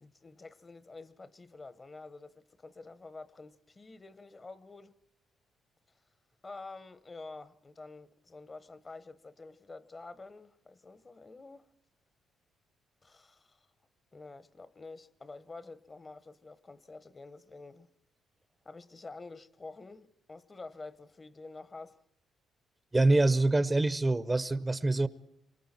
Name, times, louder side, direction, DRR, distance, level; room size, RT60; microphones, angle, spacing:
voice 1, 0.0-4.9 6.4-11.7 13.0-13.6 14.1-17.9 18.6-22.0, left 3 dB, 30° left, 1.0 m, -48 dB
voice 2, 22.9-25.1, right 2 dB, 15° right, 0.7 m, -25 dB
27.0 x 25.0 x 4.4 m
cardioid pair, 90°, 0 cm